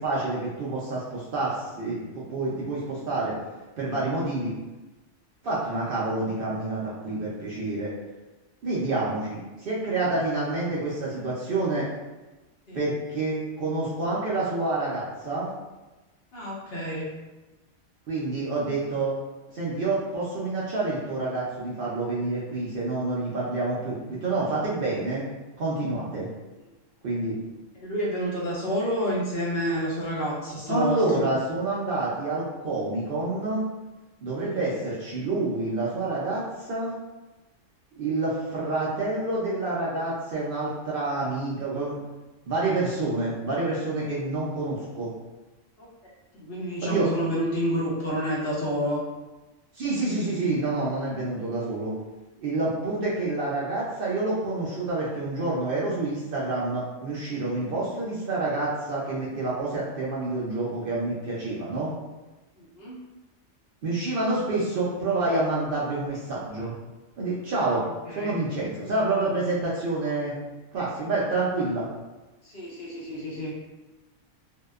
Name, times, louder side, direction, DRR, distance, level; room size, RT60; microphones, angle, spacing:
voice 1, 0.0-3.3 3.8-4.5 5.4-7.9 8.6-11.9 12.7-15.5 18.1-19.1 19.5-25.2 25.6-26.3 27.0-27.4 30.7-33.6 34.2-36.9 38.0-42.0 42.5-45.1 46.8-47.1 49.7-51.9 52.4-61.9 63.8-66.7 67.2-67.8 68.2-70.3 70.7-71.9, right 2 dB, 65° right, -6 dB, 0.6 m, -28 dB
voice 2, 16.3-17.1 27.7-31.2 34.5-34.8 45.8-49.0 62.6-63.0 67.7-68.4 72.4-73.5, equal, 55° left, -6 dB, 1.0 m, -29 dB
2.7 x 2.1 x 2.3 m, 1.1 s
omnidirectional pair, 1.3 m